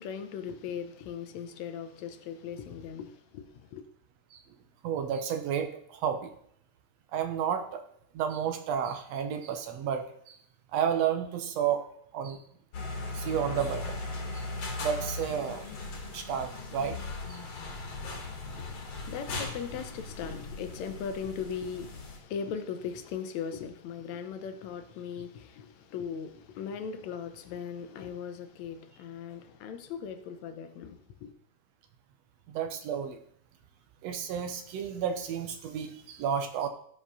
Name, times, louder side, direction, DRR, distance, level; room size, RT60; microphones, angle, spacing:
voice 1, 0.0-3.9 18.0-31.3, left 7 dB, 75° left, 2.0 m, -39 dB
voice 2, 4.8-6.3 7.1-7.8 8.1-10.4 10.7-11.8 12.1-12.4 13.1-14.0 14.3-14.5 14.8-15.7 16.1-17.0 17.3-17.4 32.5-33.2 34.0-36.7, right 8 dB, 70° right, 2.0 m, -31 dB
sound 1, 12.7-22.2, left 3 dB, 55° left, 3.1 m, -38 dB
13.5 x 4.9 x 5.4 m
omnidirectional pair, 3.4 m